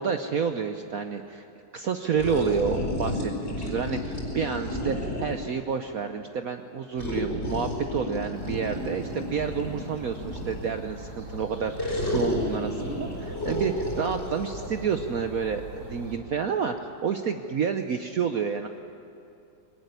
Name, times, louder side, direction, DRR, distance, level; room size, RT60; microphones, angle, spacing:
voice 1, 0.0-1.5 1.7-18.7, right 6 dB, 60° right, 7 dB, 1.0 m, -29 dB
sound 1, 2.2-5.6 7.0-10.8 11.8-14.7, left 1 dB, 30° left, 4.5 m, -31 dB
sound 2, 8.3-16.2, right 2 dB, 40° right, 4.6 m, -41 dB
21.0 x 18.5 x 9.7 m, 2.6 s
omnidirectional pair, 2.2 m